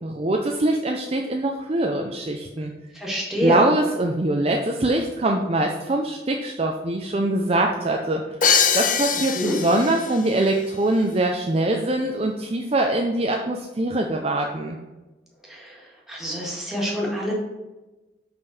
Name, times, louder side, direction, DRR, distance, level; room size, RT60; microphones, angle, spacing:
voice 1, 0.0-2.7 3.4-8.2 8.7-14.8, right 1 dB, 35° right, 2 dB, 0.5 m, -23 dB
voice 2, 2.9-3.7 9.4-9.6 15.5-15.8 16.1-17.3, equal, ahead, -4 dB, 1.9 m, -26 dB
Crash cymbal, 8.4-10.3, left 6 dB, 45° left, 0.6 m, -22 dB
5.5 x 5.2 x 5.9 m, 1.1 s
head